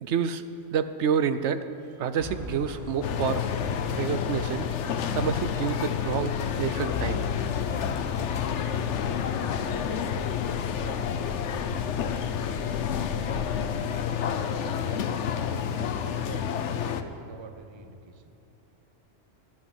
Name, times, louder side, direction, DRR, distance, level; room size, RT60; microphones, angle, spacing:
voice 1, 0.0-0.4 0.7-1.6 2.0-3.4 3.9-4.7 5.1-7.2, right 7 dB, 70° right, 12 dB, 0.9 m, -28 dB
sound 1, 2.2-13.8, left 1 dB, 15° left, 0.9 m, -42 dB
sound 2, 3.0-17.0, left 8 dB, 70° left, 1.0 m, -29 dB
voice 2, 10.7-11.5 12.1-12.6 13.3-13.8 14.3-15.3 15.8-18.3, right 4 dB, 30° right, 9 dB, 0.5 m, -46 dB
11.5 x 11.0 x 9.7 m, 2.8 s
omnidirectional pair, 1.3 m